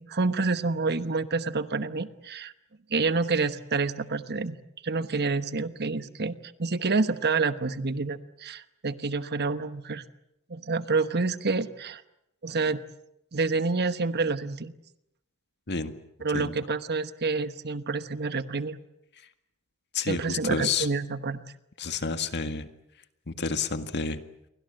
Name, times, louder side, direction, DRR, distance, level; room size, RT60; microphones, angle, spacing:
voice 1, 0.0-2.5 2.9-4.6 4.8-10.0 10.5-12.0 12.4-12.8 13.3-14.7 16.2-18.8 20.1-21.4, right 4 dB, 50° right, 12 dB, 1.1 m, -28 dB
voice 2, 19.9-20.9 21.8-22.7 23.3-24.2, left 5 dB, 50° left, 9 dB, 1.8 m, -30 dB
29.0 x 24.0 x 7.8 m, 0.83 s
head